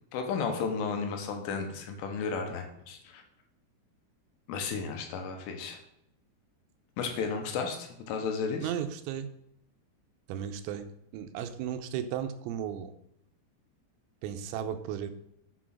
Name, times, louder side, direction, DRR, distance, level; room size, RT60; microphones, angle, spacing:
voice 1, 0.1-3.2 4.5-5.8 7.0-8.7, left 5 dB, 75° left, 3 dB, 3.7 m, -33 dB
voice 2, 8.6-9.3 10.3-10.9 11.1-12.9 14.2-15.1, right 9 dB, 90° right, 9 dB, 3.4 m, -35 dB
8.3 x 6.2 x 6.1 m, 0.80 s
omnidirectional pair, 5.9 m